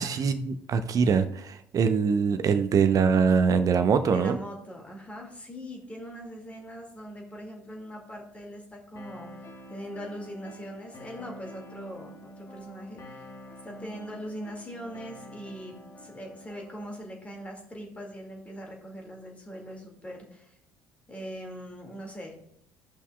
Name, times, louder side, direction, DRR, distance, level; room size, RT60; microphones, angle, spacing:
voice 1, 0.0-4.4, right 6 dB, 40° right, 10 dB, 0.8 m, -23 dB
voice 2, 4.0-13.2 13.6-20.5 21.1-22.4, equal, 15° left, 0 dB, 2.1 m, -41 dB
sound 1, 9.0-17.0, left 1 dB, 35° left, 1.5 m, -47 dB
15.0 x 5.5 x 2.3 m, 0.72 s
figure-of-eight pair, 55°, 9 cm